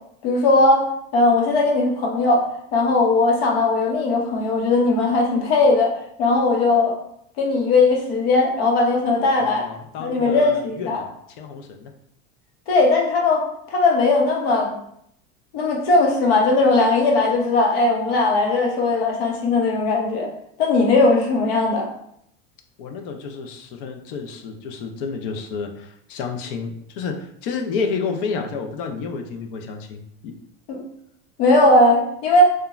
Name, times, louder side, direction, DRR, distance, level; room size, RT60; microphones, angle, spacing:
voice 1, 0.2-2.5 2.7-5.9 6.2-6.9 7.4-9.7 10.0-11.0 12.7-13.4 13.7-14.7 15.5-20.3 20.6-21.9 30.7-30.8 31.4-32.5, left 2 dB, 85° left, 0 dB, 0.9 m, -18 dB
voice 2, 9.4-11.1 11.4-11.9 22.8-30.3, left 5 dB, 60° left, 4 dB, 0.5 m, -30 dB
2.9 x 2.2 x 2.3 m, 0.71 s
cardioid pair, 175°, 30 cm